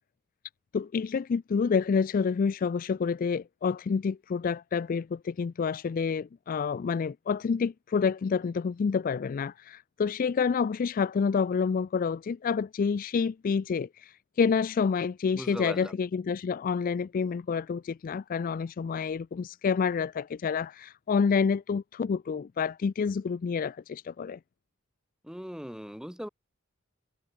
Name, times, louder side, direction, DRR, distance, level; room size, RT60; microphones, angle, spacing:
voice 1, 0.7-24.4, left 5 dB, 40° left, 0.3 m, -28 dB
voice 2, 15.3-15.9 25.2-26.3, equal, 5° right, 1.2 m, -39 dB
head